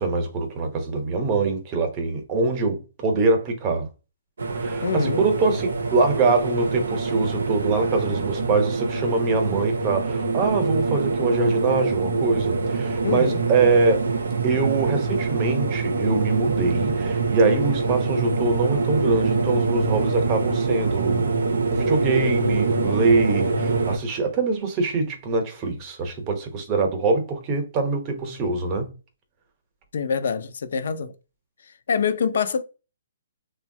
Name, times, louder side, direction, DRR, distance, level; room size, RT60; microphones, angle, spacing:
voice 1, 0.0-3.9 4.6-14.0 14.4-21.3 21.7-28.9, right 3 dB, 25° right, 0.8 m, -23 dB
sound 1, 4.4-24.0, right 4 dB, 85° right, 0.6 m, -25 dB
voice 2, 4.8-5.2 13.0-13.4 29.9-31.1 31.9-32.6, left 6 dB, 65° left, 0.4 m, -25 dB
3.0 x 2.2 x 2.6 m
hypercardioid pair, 160°, 0 cm